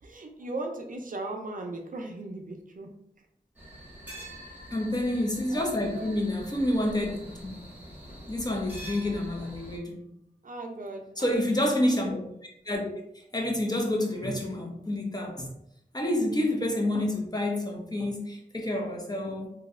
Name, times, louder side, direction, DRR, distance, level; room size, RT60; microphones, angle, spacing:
voice 1, 0.0-2.9 4.1-4.4 5.5-6.2 10.4-11.5, right 2 dB, 60° right, 3 dB, 0.4 m, -38 dB
sound 1, 3.6-9.8, equal, 10° right, 1.1 m, -45 dB
voice 2, 4.7-7.5 8.3-10.0 11.2-12.2 12.6-12.9 13.3-15.5 15.9-19.5, left 1 dB, 25° left, 0 dB, 0.7 m, -28 dB
2.9 x 2.6 x 2.5 m, 0.77 s
wide cardioid pair, 70°, 16 cm